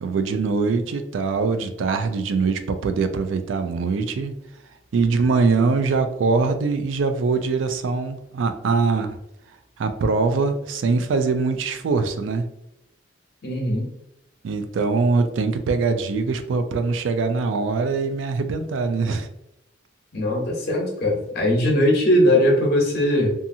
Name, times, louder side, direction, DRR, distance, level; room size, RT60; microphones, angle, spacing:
voice 1, 0.0-4.3 4.9-9.2 9.8-12.5 14.4-19.3, right 4 dB, 90° right, 8 dB, 0.3 m, -22 dB
voice 2, 13.4-13.9 20.1-23.3, left 1 dB, 55° left, 0 dB, 0.8 m, -20 dB
2.7 x 2.4 x 2.6 m, 0.84 s
head